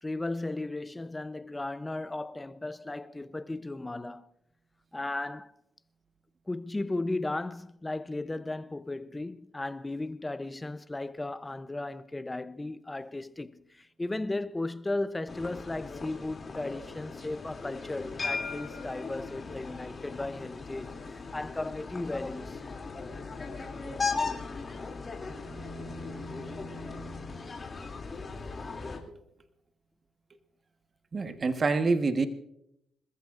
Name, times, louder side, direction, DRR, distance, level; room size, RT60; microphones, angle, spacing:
voice 1, 0.0-4.3 4.9-5.5 6.5-22.7, left 2 dB, 15° left, 0.7 m, -35 dB
sound 1, 15.3-29.0, left 4 dB, 35° left, 2.7 m, -38 dB
sound 2, 25.2-27.5, equal, 80° right, 5.5 m, -45 dB
voice 2, 31.1-32.3, right 3 dB, 35° right, 1.3 m, -27 dB
27.0 x 14.0 x 2.5 m
cardioid pair, 90°, 0 cm